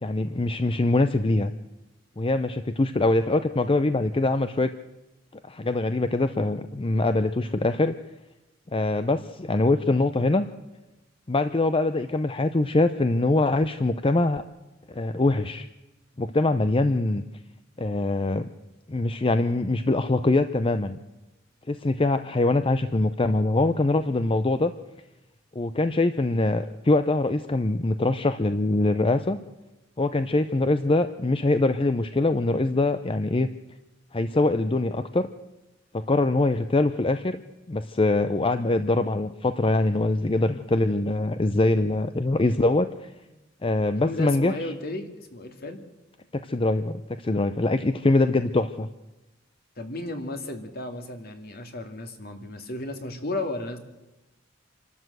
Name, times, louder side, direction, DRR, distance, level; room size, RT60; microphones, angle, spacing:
voice 1, 0.0-1.5 2.2-4.7 5.5-7.9 8.7-10.5 11.3-14.4 14.9-15.7 16.2-17.2 17.8-18.5 18.9-21.0 21.7-24.7 25.6-29.4 30.0-33.5 34.1-35.3 35.9-37.4 37.7-43.1 43.6-44.5 46.3-48.9, left 2 dB, 30° left, 10 dB, 0.6 m, -23 dB
voice 2, 44.0-45.8 49.8-53.8, left 2 dB, 55° left, 6 dB, 2.3 m, -34 dB
27.0 x 12.5 x 7.9 m, 1.0 s
head